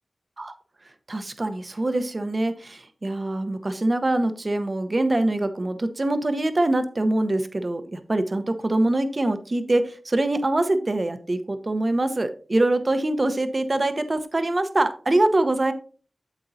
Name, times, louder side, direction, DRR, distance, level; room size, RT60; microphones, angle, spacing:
voice 1, 1.1-15.7, right 2 dB, 40° right, 10 dB, 1.0 m, -24 dB
9.0 x 7.6 x 2.7 m, 0.40 s
wide cardioid pair, 75°, 0 cm